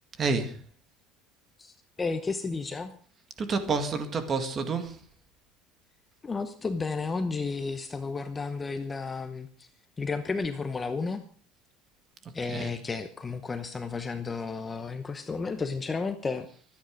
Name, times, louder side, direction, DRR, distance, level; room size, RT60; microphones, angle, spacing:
voice 1, 0.2-0.6 3.4-5.0 12.5-12.7, right 4 dB, 25° right, 1.9 m, -29 dB
voice 2, 1.6-2.9 6.2-9.7 10.0-11.2 12.3-16.5, left 4 dB, 15° left, 0.9 m, -32 dB
24.5 x 9.5 x 5.2 m
cardioid pair, 175°, 0 cm